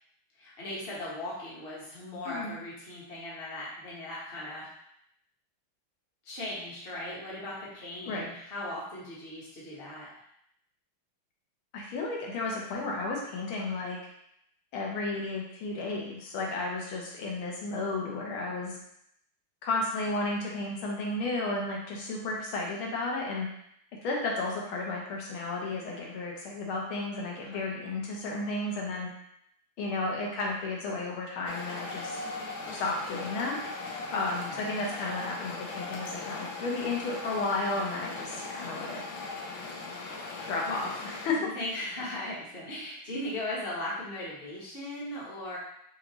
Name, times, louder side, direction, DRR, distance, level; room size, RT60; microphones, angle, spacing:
voice 1, 0.3-4.7 6.2-10.1 27.4-27.6 34.2-34.7 40.2-40.8 41.4-45.6, left 1 dB, 35° left, -6 dB, 1.2 m, -38 dB
voice 2, 11.7-14.0 14.7-18.8 19.6-23.5 24.0-29.1 29.8-32.2 32.7-33.6 34.1-39.0 40.5-41.5, left 2 dB, 85° left, -2 dB, 1.8 m, -33 dB
sound 1, 31.5-41.3, left 3 dB, 65° left, 1.1 m, -39 dB
5.6 x 2.7 x 3.0 m, 0.73 s
omnidirectional pair, 2.2 m